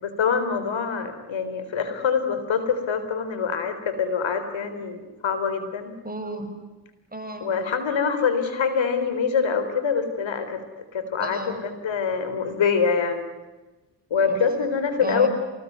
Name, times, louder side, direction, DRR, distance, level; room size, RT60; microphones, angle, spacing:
voice 1, 0.0-5.9 7.4-10.6 10.9-13.3 14.1-15.3, left 6 dB, 80° left, 10 dB, 3.9 m, -25 dB
voice 2, 6.0-6.5 7.1-7.5 11.2-11.7 14.3-14.4 15.0-15.3, right 2 dB, 20° right, 5 dB, 6.9 m, -32 dB
27.5 x 20.5 x 9.5 m, 1.2 s
cardioid pair, 55°, 45 cm